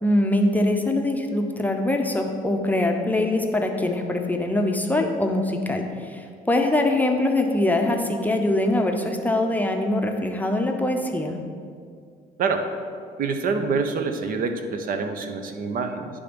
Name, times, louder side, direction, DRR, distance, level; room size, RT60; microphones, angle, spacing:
voice 1, 0.0-11.4, left 1 dB, 10° left, 3 dB, 0.6 m, -23 dB
voice 2, 13.2-16.1, right 4 dB, 55° right, 7 dB, 0.7 m, -26 dB
10.0 x 3.5 x 5.2 m, 2.2 s
cardioid pair, 110°, 17 cm